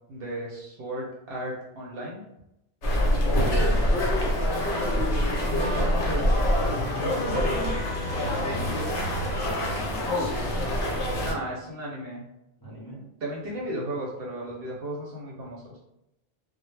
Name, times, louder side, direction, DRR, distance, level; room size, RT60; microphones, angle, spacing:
voice 1, 0.1-2.2 3.3-3.7 5.1-7.6 11.1-12.2 13.2-15.8, right 1 dB, 65° right, -4 dB, 0.7 m, -35 dB
sound 1, 2.8-11.3, equal, 70° left, 0.9 m, -25 dB
sound 2, 4.1-10.5, equal, 15° right, 0.7 m, -39 dB
voice 2, 8.4-8.8 9.2-10.5 11.1-11.4 12.6-13.1 13.6-13.7, equal, 25° left, -8 dB, 0.7 m, -43 dB
2.1 x 2.1 x 3.1 m, 0.87 s
omnidirectional pair, 1.2 m